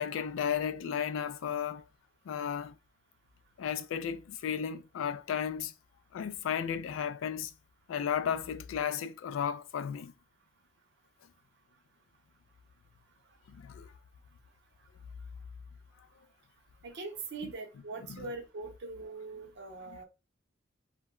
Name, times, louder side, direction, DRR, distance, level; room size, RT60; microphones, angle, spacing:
voice 1, 0.0-1.8 2.3-2.8 3.6-5.7 6.1-7.5 7.9-10.1 13.5-13.9 18.1-18.3 19.9-20.0, left 8 dB, 85° left, 0.3 m, -34 dB
voice 2, 16.8-20.0, right 3 dB, 60° right, 0.7 m, -42 dB
2.1 x 2.1 x 3.6 m
head